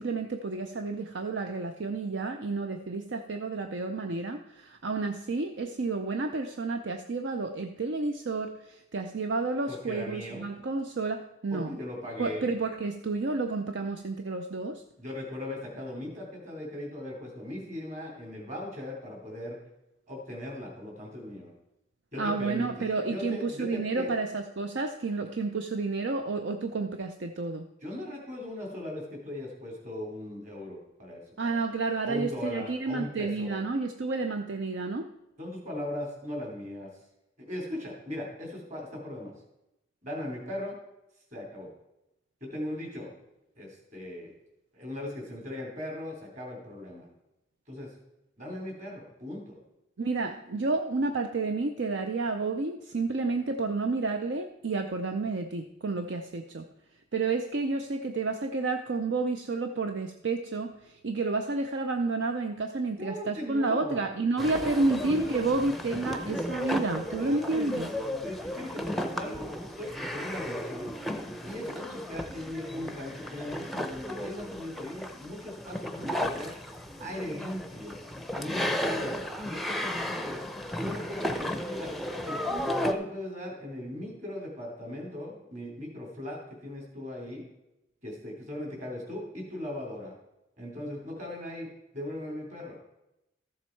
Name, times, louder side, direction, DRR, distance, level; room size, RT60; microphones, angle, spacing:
voice 1, 0.0-11.8 12.2-14.8 22.2-27.6 31.4-35.1 50.0-56.6 57.1-67.9, right 3 dB, 65° right, 6 dB, 0.6 m, -30 dB
voice 2, 9.7-10.4 11.5-12.5 15.0-19.6 20.1-21.5 22.1-24.1 27.8-31.2 32.0-33.6 35.4-36.9 37.4-39.3 40.0-40.8 41.3-41.7 42.4-43.1 43.6-44.3 44.7-47.1 47.7-47.9 48.4-49.6 63.0-64.1 64.5-65.6 67.2-67.9 68.2-70.9 71.4-76.5 77.0-78.0 78.3-80.4 80.8-81.9 82.3-87.4 88.0-90.1 90.6-91.7 91.9-92.8, left 1 dB, 40° right, 0 dB, 3.4 m, -39 dB
sound 1, 64.4-82.9, equal, ahead, 0.6 m, -34 dB
13.5 x 7.3 x 4.6 m, 0.90 s
head